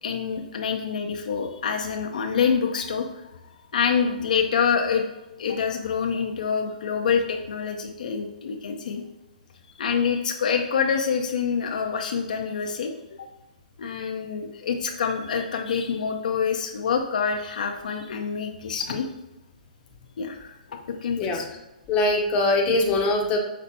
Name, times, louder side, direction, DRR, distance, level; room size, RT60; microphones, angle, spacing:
voice 1, 0.0-3.1 3.7-5.0 5.4-9.0 9.8-12.9 13.8-19.1 20.2-20.5 21.0-21.4, left 6 dB, 70° left, 3 dB, 0.5 m, -26 dB
voice 2, 21.9-23.4, left 2 dB, 25° left, 0 dB, 0.7 m, -22 dB
5.4 x 3.3 x 2.7 m, 0.96 s
hypercardioid pair, 140°, 5 cm